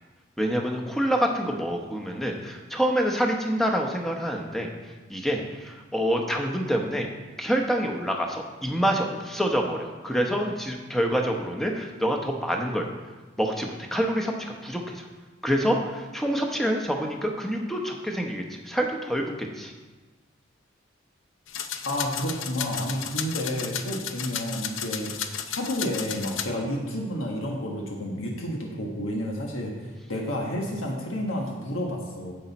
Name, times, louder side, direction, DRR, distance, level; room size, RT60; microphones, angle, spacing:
voice 1, 0.4-7.1 7.4-12.9 13.4-15.1 15.4-19.7, equal, ahead, 1 dB, 0.8 m, -27 dB
sound 1, 21.5-26.5, left 8 dB, 75° left, 0.6 m, -33 dB
voice 2, 21.8-32.3, equal, 90° left, 0 dB, 1.4 m, -30 dB
10.0 x 7.8 x 4.1 m, 1.3 s
head